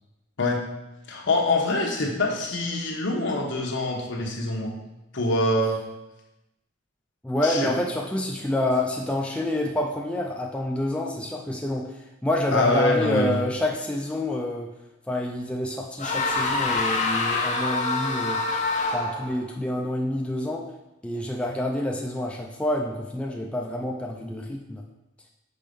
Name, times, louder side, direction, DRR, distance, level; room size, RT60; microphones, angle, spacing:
voice 1, 1.1-4.8 5.1-5.8 7.4-7.7 12.5-13.4, left 2 dB, 65° left, 0 dB, 1.1 m, -24 dB
voice 2, 7.2-14.7 15.1-18.4 18.9-20.7 21.0-24.8, left 1 dB, 5° left, 0 dB, 0.4 m, -28 dB
sound 1, 16.0-19.4, left 3 dB, 40° left, 0.9 m, -26 dB
5.5 x 4.2 x 5.2 m, 0.97 s
head